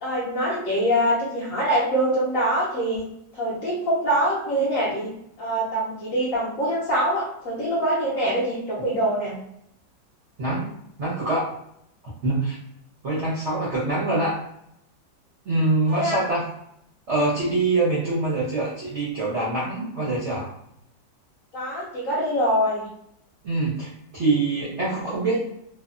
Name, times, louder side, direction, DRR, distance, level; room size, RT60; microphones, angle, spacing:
voice 1, 0.0-3.1 3.3-5.1 5.4-9.4 15.9-16.2 21.5-22.9, equal, 70° left, -5 dB, 0.7 m, -24 dB
voice 2, 11.0-11.5 12.2-12.5 13.0-14.4 15.4-16.4 17.1-20.5 23.4-25.4, right 2 dB, 60° right, -6 dB, 0.7 m, -24 dB
3.3 x 2.1 x 2.4 m, 0.74 s
omnidirectional pair, 2.1 m